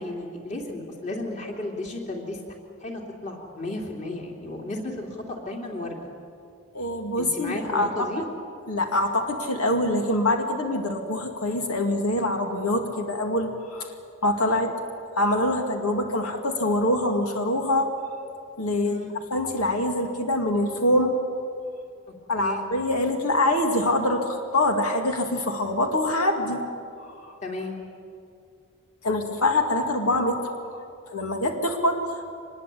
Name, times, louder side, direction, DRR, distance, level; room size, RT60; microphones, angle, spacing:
voice 1, 0.0-2.4 2.8-6.1 7.2-8.2 18.8-19.1 22.4-22.6 27.4-27.8, left 2 dB, 35° left, 0 dB, 3.1 m, -34 dB
voice 2, 6.7-8.3 8.7-13.9 14.2-14.7 15.2-17.9 18.6-19.0 19.3-21.2 22.3-26.6 27.0-27.4 29.0-30.8 31.1-32.2, left 1 dB, 90° left, 3 dB, 2.3 m, -24 dB
25.0 x 20.5 x 8.5 m, 2.5 s
head